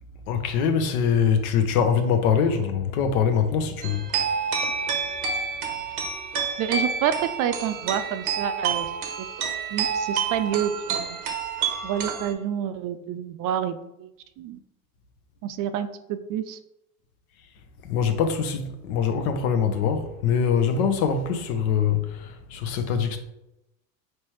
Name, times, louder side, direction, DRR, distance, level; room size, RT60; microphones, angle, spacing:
voice 1, 0.3-4.1 17.8-23.2, left 7 dB, 80° left, 0.7 m, -23 dB
sound 1, 3.8-12.3, right 6 dB, 80° right, 0.8 m, -28 dB
voice 2, 6.6-8.9 9.2-9.3 9.7-11.2 11.8-14.1 14.4-14.6 15.4-16.6, right 9 dB, 50° right, 0.4 m, -28 dB
4.4 x 3.3 x 3.0 m
hypercardioid pair, 80°, 42 cm